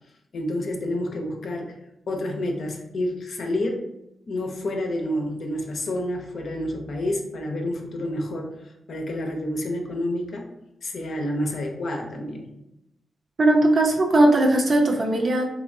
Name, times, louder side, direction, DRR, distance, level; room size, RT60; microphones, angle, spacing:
voice 1, 0.3-1.8 2.1-3.8 4.3-8.6 8.9-10.5 10.8-12.5, left 1 dB, 65° left, 2 dB, 0.6 m, -29 dB
voice 2, 13.4-15.5, right 1 dB, 50° right, 2 dB, 0.6 m, -19 dB
3.1 x 2.7 x 2.6 m, 0.87 s
supercardioid pair, 50°, 0 cm